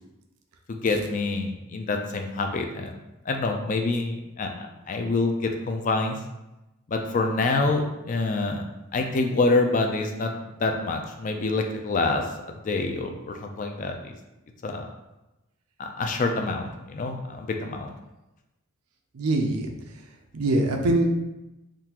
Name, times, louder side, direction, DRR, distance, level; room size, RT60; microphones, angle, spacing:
voice 1, 0.7-2.9 3.3-4.5 4.9-6.2 6.9-8.6 8.9-10.3 10.6-14.1 14.6-14.9 15.8-17.9, left 3 dB, 35° left, 3 dB, 0.3 m, -26 dB
voice 2, 19.1-19.7 20.3-21.1, right 2 dB, 85° right, 3 dB, 0.5 m, -23 dB
3.6 x 2.4 x 2.9 m, 0.98 s
head